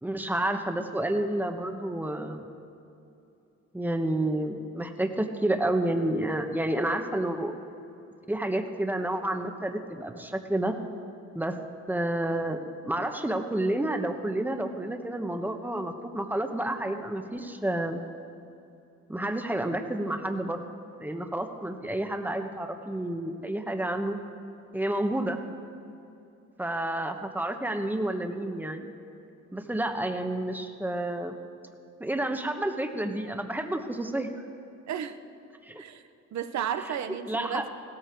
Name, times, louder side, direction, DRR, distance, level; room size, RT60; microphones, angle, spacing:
voice 1, 0.0-2.4 3.7-7.5 8.3-10.7 11.3-11.6 11.9-18.0 19.1-20.6 21.0-24.2 24.7-25.4 26.6-28.9 29.5-31.3 32.0-34.3 35.6-35.8 37.3-37.6, right 1 dB, 5° right, 5 dB, 1.2 m, -30 dB
voice 2, 34.9-35.2 35.8-36.0 36.3-37.7, right 9 dB, 65° right, 10 dB, 0.9 m, -33 dB
16.5 x 13.5 x 4.6 m, 2.7 s
cardioid pair, 90°, 30 cm